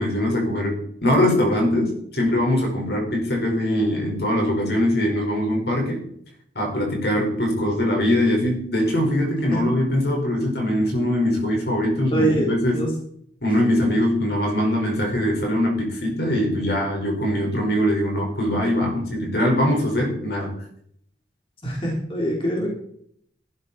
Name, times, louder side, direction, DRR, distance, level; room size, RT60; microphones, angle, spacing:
voice 1, 0.0-6.0 6.5-12.9 13.4-20.5, left 1 dB, 65° left, 1 dB, 4.9 m, -22 dB
voice 2, 12.1-12.9 13.8-13.9 21.6-22.7, right 1 dB, 30° left, -2 dB, 3.5 m, -24 dB
15.0 x 12.0 x 4.3 m, 0.67 s
head